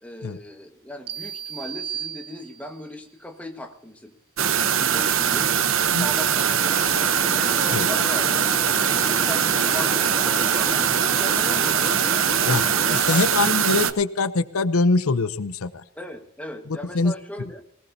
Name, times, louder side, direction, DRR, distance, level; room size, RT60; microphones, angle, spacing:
voice 1, 0.0-4.1 4.5-7.1 7.5-11.9 13.1-13.3 15.9-17.6, left 1 dB, 5° left, 3 dB, 1.5 m, -38 dB
sound 1, 1.1-2.9, right 9 dB, 45° right, 0.6 m, -35 dB
sound 2, 4.4-13.9, right 9 dB, 70° right, 0.9 m, -22 dB
sound 3, 6.6-13.0, left 3 dB, 25° left, 0.6 m, -33 dB
voice 2, 12.4-15.8 16.9-17.1, left 3 dB, 90° left, 15 dB, 0.7 m, -23 dB
19.0 x 18.5 x 2.8 m, 0.70 s
head